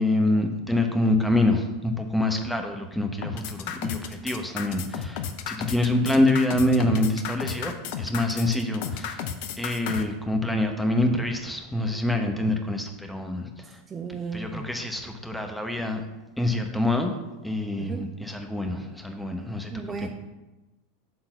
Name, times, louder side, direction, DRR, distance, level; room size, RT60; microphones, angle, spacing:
voice 1, 0.0-9.3 9.6-13.8 14.1-16.0 16.4-17.2 17.4-20.1, left 1 dB, 5° left, 4 dB, 1.0 m, -26 dB
sound 1, 3.2-10.0, left 8 dB, 55° left, 0.6 m, -33 dB
voice 2, 13.9-14.7 17.8-18.1 19.7-20.1, right 5 dB, 25° right, 5 dB, 0.5 m, -34 dB
6.7 x 3.9 x 5.8 m, 1.1 s
figure-of-eight pair, 85°, 0 cm